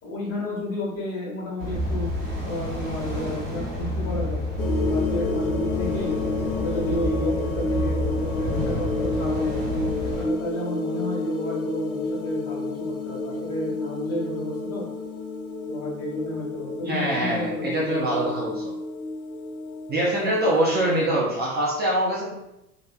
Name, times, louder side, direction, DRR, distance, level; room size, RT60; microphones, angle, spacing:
voice 1, 0.0-2.1 2.4-4.5 4.8-6.1 6.5-9.6 10.1-14.8 15.7-18.3, left 1 dB, 35° left, -4 dB, 1.4 m, -32 dB
sound 1, 1.6-10.2, left 1 dB, 85° right, 1.2 m, -29 dB
sound 2, 4.6-21.1, left 2 dB, 85° left, 0.6 m, -30 dB
voice 2, 16.8-18.7 19.9-22.3, right 1 dB, 25° right, -5 dB, 0.6 m, -24 dB
3.2 x 2.4 x 2.2 m, 0.86 s
hypercardioid pair, 90°, 42 cm